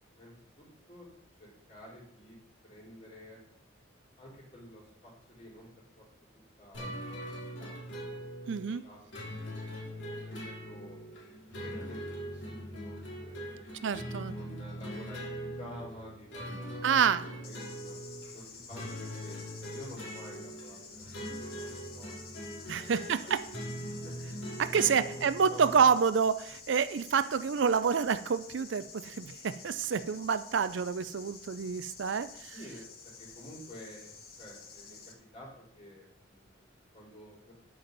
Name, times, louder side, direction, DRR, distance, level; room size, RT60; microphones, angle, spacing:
voice 1, 0.1-1.1 1.4-2.4 2.6-3.4 4.2-5.7 6.0-6.1 6.6-6.9 7.2-9.1 9.4-9.7 10.2-12.0 12.3-13.9 14.3-18.0 18.3-22.1 22.7-23.3 24.0-24.1 24.7-24.8 25.1-25.7 32.5-35.0 35.3-37.5, equal, 35° left, -4 dB, 4.0 m, -50 dB
sound 1, 6.7-25.9, equal, 65° left, 2.5 m, -42 dB
voice 2, 8.5-8.8 13.8-14.3 16.8-17.2 22.7-23.4 24.6-32.5, right 6 dB, 65° right, 13 dB, 0.4 m, -28 dB
sound 2, 17.4-35.1, left 5 dB, 50° left, 1.3 m, -50 dB
9.0 x 8.6 x 4.0 m, 0.70 s
head